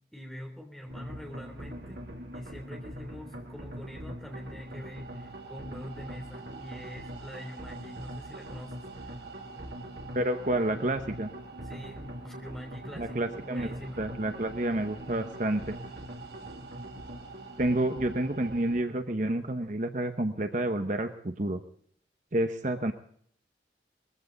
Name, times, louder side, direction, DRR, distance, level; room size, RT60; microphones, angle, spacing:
voice 1, 0.1-2.1 2.3-9.1 11.6-14.0, equal, ahead, 2 dB, 3.4 m, -44 dB
sound 1, 0.9-18.8, right 1 dB, 70° right, 2.6 m, -42 dB
voice 2, 10.1-11.3 12.9-15.7 17.6-21.6 22.3-22.9, right 1 dB, 45° right, 7 dB, 1.0 m, -29 dB
20.5 x 15.0 x 4.0 m, 0.62 s
head